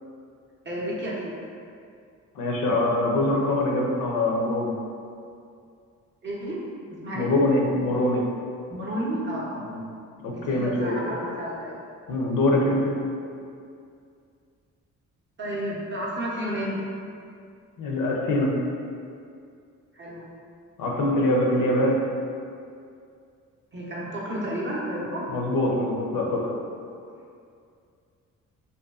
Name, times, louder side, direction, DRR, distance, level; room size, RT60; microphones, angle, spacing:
voice 1, 0.6-1.4 6.2-6.6 7.0-7.3 8.7-9.7 10.3-11.7 15.4-16.8 19.9-20.2 20.8-21.0 23.7-25.3, equal, 35° right, -6 dB, 0.5 m, -31 dB
voice 2, 2.4-4.7 7.1-8.2 9.7-9.8 10.2-11.0 12.1-12.9 17.8-18.5 20.8-22.0 25.3-26.4, left 1 dB, 80° left, -1 dB, 0.5 m, -23 dB
2.5 x 2.2 x 2.3 m, 2.4 s
cardioid pair, 65°, 32 cm